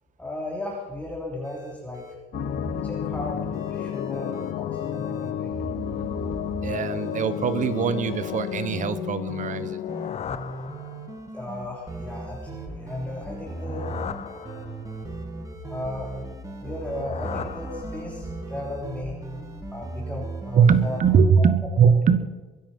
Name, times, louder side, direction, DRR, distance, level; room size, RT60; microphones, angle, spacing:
voice 1, 0.2-2.1 2.8-3.4 3.7-5.5 11.3-13.9 15.6-16.2 16.6-19.2 19.7-21.5, left 2 dB, 10° left, -3 dB, 3.3 m, -35 dB
sound 1, 1.4-21.2, right 3 dB, 20° right, 2.6 m, -38 dB
sound 2, 2.3-10.2, left 10 dB, 65° left, 0.9 m, -31 dB
voice 2, 6.6-9.8 20.5-22.2, right 6 dB, 50° right, 14 dB, 1.3 m, -21 dB
sound 3, 9.5-11.4 13.3-15.1 16.6-18.5, left 8 dB, 40° left, 1.0 m, -38 dB
23.0 x 10.5 x 5.5 m, 1.3 s
cardioid pair, 110°, 17 cm